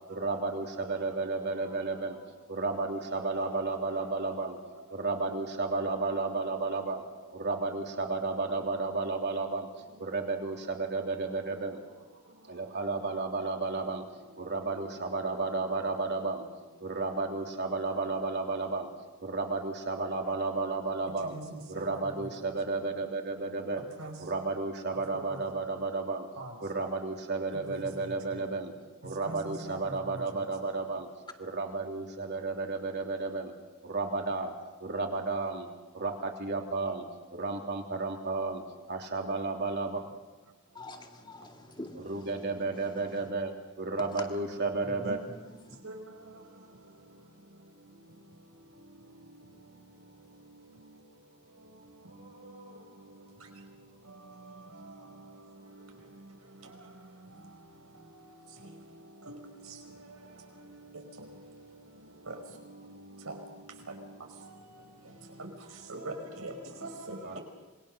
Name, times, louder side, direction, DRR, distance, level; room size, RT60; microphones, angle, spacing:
voice 1, 0.1-2.2 2.5-4.6 4.9-7.0 7.3-9.7 10.0-11.8 12.5-14.0 14.4-16.4 16.8-18.9 19.2-21.4 21.7-23.9 24.2-26.3 26.6-28.7 29.0-31.1 31.4-33.5 33.8-34.5 34.8-35.7 35.9-37.0 37.3-38.6 38.9-40.0 41.9-45.2 67.2-67.4, right 3 dB, 50° right, 3.2 m, -32 dB
voice 2, 29.3-30.0 45.0-45.1 45.8-45.9 63.3-63.4 65.4-65.5 65.9-66.5 66.8-67.4, right 2 dB, 85° right, 4.9 m, -40 dB
voice 3, 40.8-42.3 44.8-45.6, left 1 dB, 20° left, 2.2 m, -46 dB
27.0 x 21.5 x 6.4 m
head